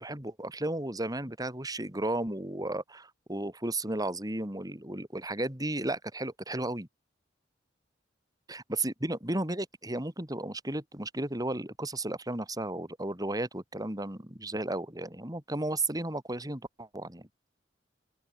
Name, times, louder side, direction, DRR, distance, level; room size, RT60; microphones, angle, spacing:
voice 1, 0.0-6.9 8.5-17.3, right 2 dB, 20° right, 3.8 m, -34 dB
open air
head